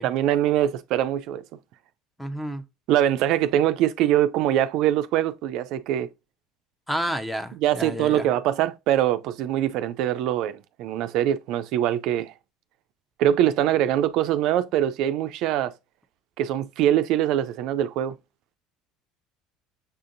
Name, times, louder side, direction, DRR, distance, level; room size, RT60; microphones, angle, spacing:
voice 1, 0.0-1.4 2.9-6.1 7.6-12.3 13.2-15.7 16.4-18.2, right 11 dB, 65° right, 0.3 m, -23 dB
voice 2, 2.2-2.6 6.9-8.3, equal, 5° left, 0.6 m, -30 dB
6.6 x 2.6 x 2.5 m
supercardioid pair, 90°, 0 cm